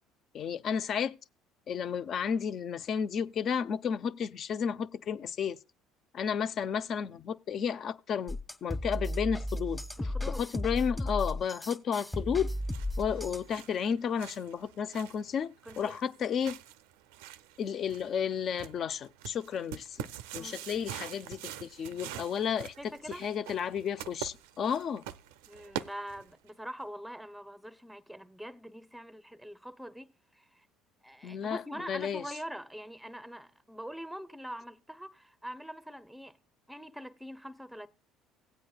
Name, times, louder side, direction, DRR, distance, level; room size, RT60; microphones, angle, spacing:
voice 1, 0.3-1.2 1.7-5.6 6.1-9.8 10.3-12.5 13.0-16.6 17.6-25.0 31.2-32.2, left 7 dB, 50° left, 0.5 m, -32 dB
sound 1, 8.3-13.5, left 1 dB, 20° left, 1.4 m, -35 dB
voice 2, 10.0-10.5 15.6-16.0 20.4-20.6 22.8-23.3 25.5-30.6 31.0-36.4 36.7-37.9, equal, ahead, 0.6 m, -44 dB
sound 2, 12.3-26.5, right 11 dB, 85° right, 0.4 m, -45 dB
17.0 x 8.3 x 2.3 m
supercardioid pair, 80°, 0 cm